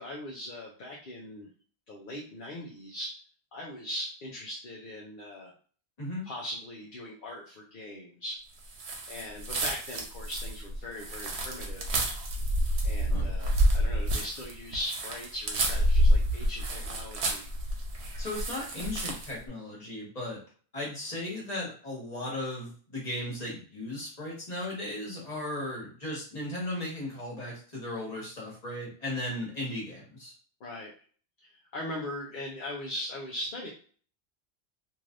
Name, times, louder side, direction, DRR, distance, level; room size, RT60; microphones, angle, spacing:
voice 1, 0.0-1.5 1.9-3.1 3.5-5.5 6.2-8.4 9.1-12.0 12.8-17.5 30.6-30.9 31.4-33.7, left 1 dB, 55° left, -2 dB, 0.8 m, -40 dB
sound 1, 8.7-19.4, right 1 dB, 75° right, 1.0 m, -28 dB
voice 2, 18.2-20.4 20.7-30.3, left 1 dB, 35° left, -4 dB, 1.4 m, -36 dB
3.2 x 2.8 x 2.5 m, 0.42 s
omnidirectional pair, 1.1 m